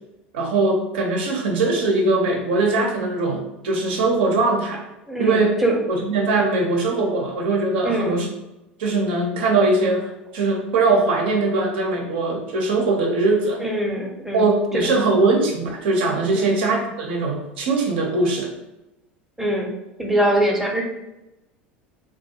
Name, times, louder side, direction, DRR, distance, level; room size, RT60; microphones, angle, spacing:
voice 1, 0.3-4.8 5.2-5.6 5.9-8.3 8.8-10.0 10.3-13.6 14.3-18.5, right 3 dB, 70° right, 1 dB, 0.6 m, -21 dB
voice 2, 5.1-5.8 7.8-8.2 13.6-14.5 16.4-16.6 19.4-19.7 20.0-20.8, right 1 dB, 5° right, -1 dB, 0.6 m, -23 dB
2.5 x 2.2 x 2.7 m, 0.97 s
hypercardioid pair, 75°, 6 cm